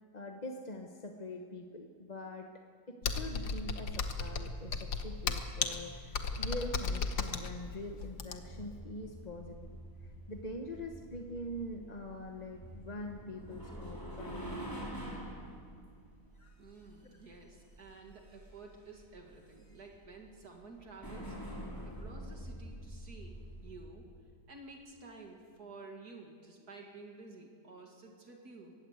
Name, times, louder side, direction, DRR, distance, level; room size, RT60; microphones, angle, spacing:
voice 1, 0.1-2.5 2.9-9.8 10.3-14.5 16.4-16.5, left 1 dB, 25° left, 3 dB, 1.2 m, -44 dB
Computer keyboard, 3.0-8.6, left 5 dB, 75° left, 1.9 m, -35 dB
sound 1, 8.4-23.9, equal, 10° left, 4.5 m, -46 dB
voice 2, 16.6-21.4 21.8-24.1 24.5-28.7, right 3 dB, 65° right, 1 dB, 2.7 m, -52 dB
22.5 x 18.5 x 8.1 m, 2.3 s
omnidirectional pair, 1.8 m